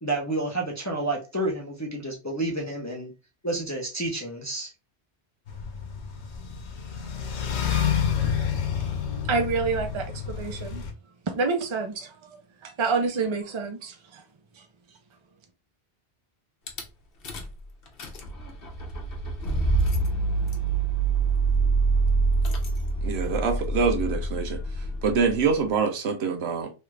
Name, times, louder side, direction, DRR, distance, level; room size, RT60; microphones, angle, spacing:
voice 1, 0.0-3.1 3.4-4.7, right 2 dB, 20° left, 0.5 m, -30 dB
sound 1, 5.5-10.9, left 7 dB, 85° left, 1.0 m, -29 dB
voice 2, 9.1-10.8 11.2-14.2 14.5-14.7, right 4 dB, 35° right, 0.5 m, -28 dB
Rattle / Car / Engine starting, 16.7-16.8 17.2-17.6 17.9-25.6, right 3 dB, 60° left, 0.9 m, -26 dB
voice 3, 23.0-24.6 25.0-26.7, right 5 dB, 75° right, 0.9 m, -25 dB
3.1 x 2.4 x 3.1 m
omnidirectional pair, 1.1 m